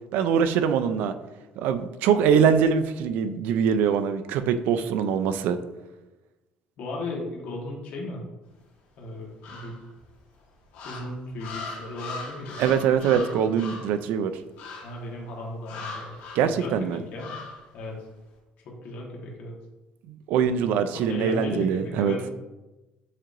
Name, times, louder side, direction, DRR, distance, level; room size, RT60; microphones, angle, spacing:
voice 1, 0.1-1.1 1.6-5.6 12.6-14.3 16.4-17.0 20.1-22.1, right 7 dB, 75° right, 10 dB, 0.3 m, -23 dB
voice 2, 6.8-8.2 9.0-9.8 10.8-12.7 13.0-13.2 14.8-16.1 16.4-17.3 17.7-18.0 18.6-19.5 20.9-21.7 22.0-22.2, left 2 dB, 60° left, -2 dB, 1.2 m, -36 dB
sound 1, 9.4-10.0 10.7-14.0 14.6-15.0 15.6-16.5 17.2-17.6, left 3 dB, 90° left, 1.6 m, -39 dB
7.2 x 2.9 x 2.5 m, 1.1 s
cardioid pair, 140°, 3 cm